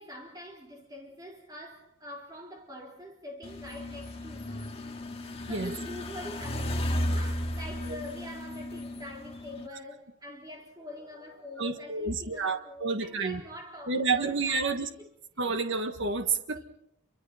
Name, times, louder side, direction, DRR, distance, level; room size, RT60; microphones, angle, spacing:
voice 1, 0.0-4.7 5.2-15.0 16.5-16.6, left 1 dB, 15° right, 4.0 m, -45 dB
sound 1, 3.4-9.7, left 1 dB, 25° left, 2.0 m, -34 dB
voice 2, 11.6-13.4 13.9-14.9 15.4-16.6, right 4 dB, 55° right, 1.5 m, -29 dB
29.0 x 24.0 x 4.3 m
head